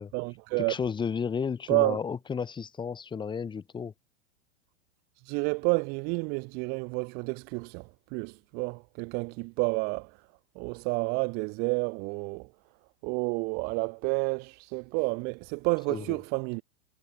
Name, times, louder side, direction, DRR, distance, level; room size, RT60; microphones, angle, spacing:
voice 1, 0.1-0.8 1.7-2.0 5.2-10.2 10.5-12.5 13.0-16.6, right 33 dB, 25° right, 0.7 m, -30 dB
voice 2, 0.7-3.9 15.9-16.2, left 6 dB, 10° left, 6.5 m, -32 dB
supercardioid pair, 165°, 38 cm